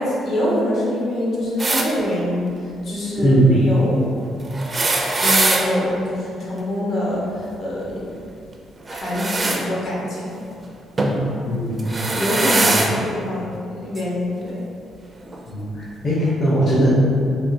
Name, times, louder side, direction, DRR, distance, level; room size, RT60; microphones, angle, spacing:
voice 1, 0.0-4.2 5.2-8.2 8.9-10.4 12.1-14.7, left 1 dB, 70° left, -6 dB, 0.9 m, -25 dB
sound 1, 1.6-1.9 4.5-5.6 8.9-9.6 11.0-11.2 11.8-12.9 14.0-14.1 15.3-15.4, right 2 dB, 30° right, 0.4 m, -21 dB
voice 2, 3.2-3.6 11.0-11.9 12.6-12.8 15.5-16.9, right 1 dB, 50° left, -8 dB, 0.7 m, -19 dB
3.5 x 2.4 x 2.6 m, 2.5 s
cardioid pair, 90°, 0 cm